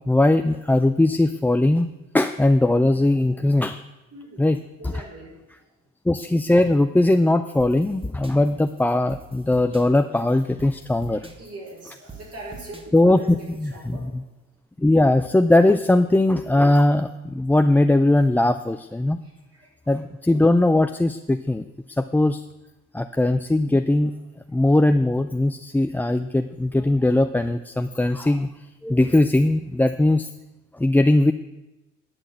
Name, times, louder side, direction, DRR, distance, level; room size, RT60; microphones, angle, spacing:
voice 1, 0.0-3.8 4.4-4.6 4.8-5.0 6.1-11.3 12.9-14.2 14.8-19.2 19.9-21.6 22.0-22.4 22.9-24.1 24.5-30.3 30.7-31.3, left 2 dB, 5° left, 8 dB, 0.3 m, -20 dB
voice 2, 4.1-4.5 4.8-5.4 11.2-14.1 19.2-19.3 19.6-19.7, right 2 dB, 55° right, -2 dB, 4.4 m, -41 dB
sound 1, 7.6-13.9, right 4 dB, 20° right, 1.4 m, -45 dB
10.5 x 6.0 x 7.7 m, 1.0 s
cardioid pair, 90°, 30 cm